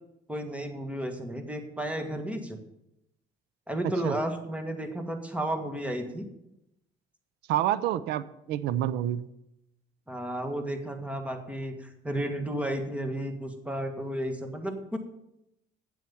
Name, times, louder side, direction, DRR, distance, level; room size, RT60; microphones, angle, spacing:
voice 1, 0.3-2.6 3.7-6.3 10.1-15.0, right 1 dB, 10° right, 5 dB, 1.6 m, -33 dB
voice 2, 7.5-9.3, right 12 dB, 85° right, 16 dB, 0.5 m, -28 dB
8.7 x 7.6 x 7.1 m, 0.83 s
cardioid pair, 110°, 17 cm